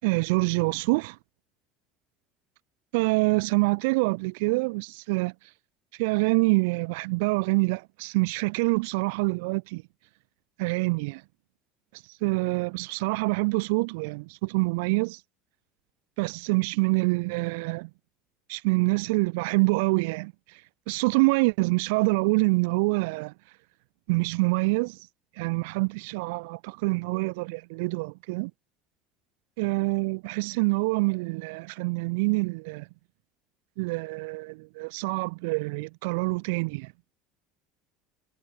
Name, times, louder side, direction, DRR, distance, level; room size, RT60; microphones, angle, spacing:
voice 1, 0.0-1.2 2.9-5.3 6.0-9.8 10.6-11.2 12.2-15.2 16.2-17.9 18.5-20.3 20.9-23.3 24.1-25.0 25.4-28.5 29.6-32.9 33.8-36.9, right 27 dB, 80° right, 7.8 m, -26 dB
cardioid pair, 155°, 0 cm